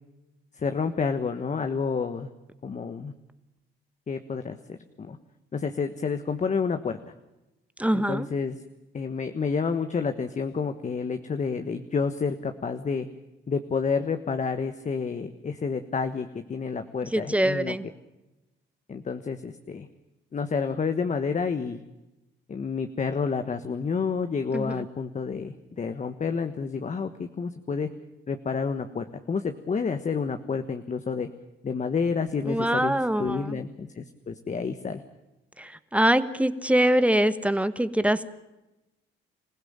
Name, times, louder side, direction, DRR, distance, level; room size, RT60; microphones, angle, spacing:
voice 1, 0.5-2.3 2.6-3.1 4.1-5.2 5.5-7.0 7.9-8.6 8.9-13.1 13.5-17.7 18.9-19.9 20.3-21.8 22.5-27.9 28.3-31.3 31.6-35.0, left 5 dB, 35° left, 8 dB, 1.4 m, -29 dB
voice 2, 7.8-8.3 17.1-17.8 24.5-24.8 32.4-33.6 35.6-38.3, right 1 dB, 5° right, 12 dB, 1.4 m, -24 dB
27.0 x 16.0 x 8.9 m, 0.98 s
cardioid pair, 90°, 20 cm